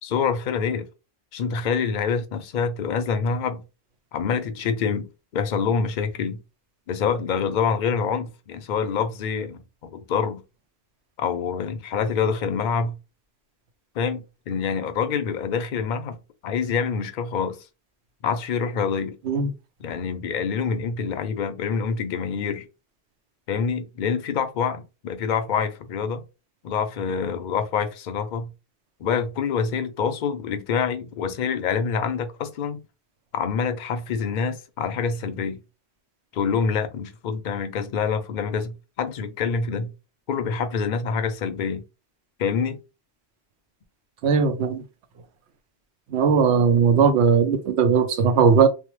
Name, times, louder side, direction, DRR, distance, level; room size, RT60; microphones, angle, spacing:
voice 1, 0.0-0.9 1.3-3.6 4.1-6.4 6.9-10.4 11.2-12.9 13.9-16.2 16.4-17.6 18.2-19.2 19.8-22.7 23.5-26.2 26.6-28.5 29.0-32.8 33.3-35.6 36.3-39.9 40.3-41.8 42.4-42.8, left 6 dB, 60° left, 0.5 m, -26 dB
voice 2, 44.2-44.8 46.1-48.7, right 6 dB, 80° right, 0.9 m, -18 dB
2.7 x 2.1 x 3.0 m
omnidirectional pair, 1.1 m